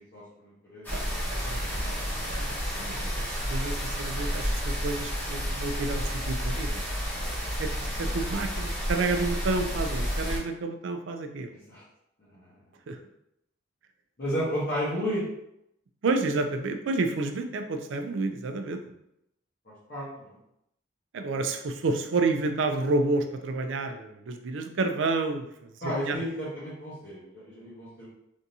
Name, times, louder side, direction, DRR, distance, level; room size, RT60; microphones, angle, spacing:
voice 1, 0.0-0.9 11.7-11.8 12.2-12.5 14.2-15.2 19.7-20.4 25.8-28.1, equal, 45° left, -9 dB, 0.9 m, -33 dB
sound 1, 0.8-10.4, equal, 10° left, 0.9 m, -31 dB
voice 2, 0.9-6.8 7.6-11.6 12.9-13.0 16.0-18.9 21.1-26.2, right 3 dB, 65° right, 6 dB, 0.4 m, -30 dB
3.4 x 2.7 x 2.7 m, 0.80 s
head